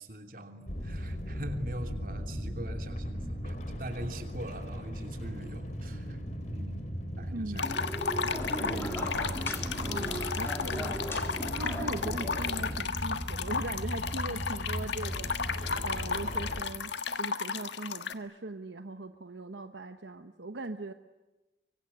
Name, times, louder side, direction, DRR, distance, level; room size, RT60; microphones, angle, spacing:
voice 1, 0.0-6.2 6.5-6.9 7.2-7.6, right 1 dB, 50° right, 6 dB, 3.1 m, -42 dB
qbist reggae, 0.7-16.6, equal, 40° left, 3.0 m, -38 dB
voice 2, 7.3-7.8 8.6-9.4 9.8-11.0 11.6-16.9 17.2-20.9, right 2 dB, 80° right, 8 dB, 1.0 m, -40 dB
sound 1, 7.6-18.1, left 5 dB, 80° left, 1.5 m, -34 dB
sound 2, 7.6-12.8, equal, 15° left, 3.5 m, -38 dB
25.0 x 24.0 x 9.9 m, 1.1 s
head